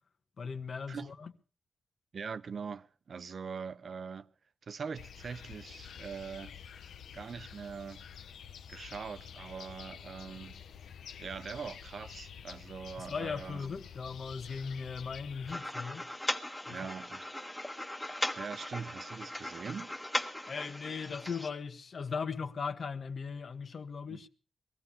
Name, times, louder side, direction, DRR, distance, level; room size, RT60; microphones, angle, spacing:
voice 1, 0.4-1.3 13.0-16.0 16.7-16.8 20.5-24.3, left 5 dB, 55° left, 1.4 m, -38 dB
voice 2, 2.1-4.3 4.6-6.6 7.1-8.0 8.7-10.6 11.2-13.7 16.7-17.3 18.4-19.9 24.1-24.2, right 6 dB, 55° right, 0.8 m, -42 dB
sound 1, 4.9-15.5, left 8 dB, 85° left, 0.8 m, -49 dB
sound 2, 15.5-21.5, left 1 dB, 10° left, 1.6 m, -38 dB
23.0 x 16.0 x 3.5 m
cardioid pair, 95°, 0 cm